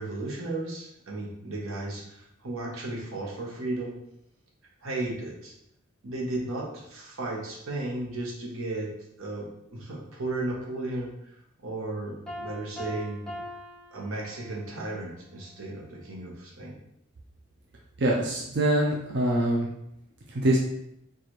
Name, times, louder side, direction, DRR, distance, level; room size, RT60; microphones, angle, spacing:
voice 1, 0.0-4.0 4.8-5.5 6.0-8.9 9.2-11.1 11.6-13.2 13.9-16.8, right 2 dB, 90° right, -2 dB, 1.0 m, -34 dB
Piano, 12.3-14.8, left 1 dB, ahead, 0.6 m, -41 dB
voice 2, 18.0-19.7 20.3-20.6, right 1 dB, 55° right, -3 dB, 0.5 m, -24 dB
4.7 x 2.4 x 3.0 m, 0.78 s
head